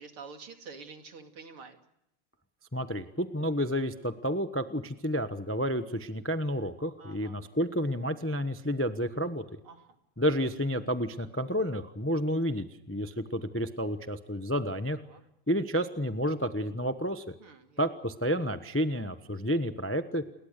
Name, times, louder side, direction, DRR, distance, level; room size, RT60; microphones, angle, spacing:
voice 1, 0.0-1.8 7.0-7.3 9.7-9.9 15.1-15.2 17.4-17.8, right 5 dB, 85° right, 5 dB, 3.4 m, -47 dB
voice 2, 2.7-9.4 10.2-15.0 15.5-17.3 17.8-20.2, equal, 15° left, 9 dB, 0.5 m, -30 dB
29.5 x 21.5 x 6.7 m, 0.80 s
omnidirectional pair, 2.3 m